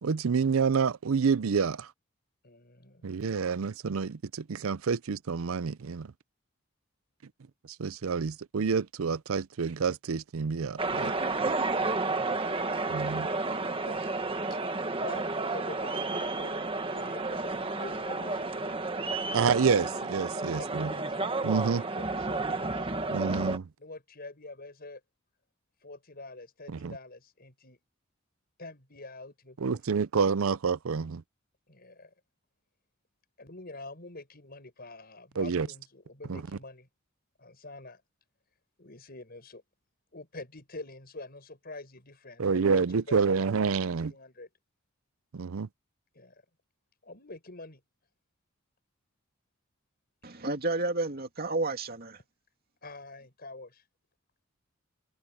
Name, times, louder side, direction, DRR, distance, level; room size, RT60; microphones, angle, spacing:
voice 1, 0.0-1.9 3.0-6.1 7.8-11.2 12.9-13.3 19.3-20.9 21.4-21.8 23.1-23.7 26.7-26.9 29.6-31.2 35.4-35.7 36.3-36.4 42.4-44.1 45.3-45.7, right 5 dB, 85° right, 0.5 m, -28 dB
voice 2, 2.4-3.1 12.2-12.8 13.5-14.0 14.5-16.6 16.9-18.7 20.5-21.3 21.8-22.9 23.8-25.0 25.8-27.8 28.6-30.0 31.7-32.1 33.4-36.9 37.4-38.0 38.8-39.6 40.1-43.5 43.8-44.5 46.1-46.4 47.0-47.8 52.8-53.8, left 2 dB, 50° left, 6.6 m, -46 dB
sound 1, 10.8-23.6, right 3 dB, 25° right, 1.6 m, -31 dB
voice 3, 50.2-52.2, right 2 dB, 50° right, 2.6 m, -31 dB
head